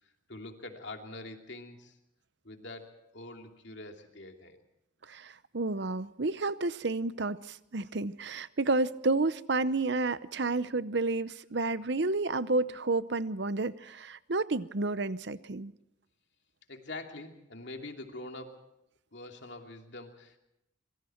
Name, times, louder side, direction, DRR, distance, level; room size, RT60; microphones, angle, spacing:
voice 1, 0.0-2.0 2.4-4.6 16.7-18.7 19.1-20.4, left 2 dB, 60° left, 2.8 m, -45 dB
voice 2, 5.1-15.7, right 3 dB, 55° right, 0.8 m, -30 dB
25.5 x 23.5 x 4.5 m
head